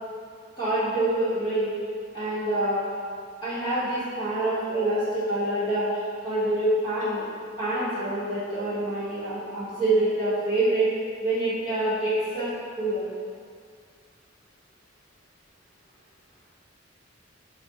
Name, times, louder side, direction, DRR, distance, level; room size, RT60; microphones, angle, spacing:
voice 1, 0.6-1.7 2.1-2.8 3.4-5.9 6.2-7.2 7.6-10.8 11.2-12.5 12.8-13.0, right 1 dB, 25° left, -13 dB, 1.2 m, -26 dB
2.4 x 2.4 x 4.0 m, 2.2 s
head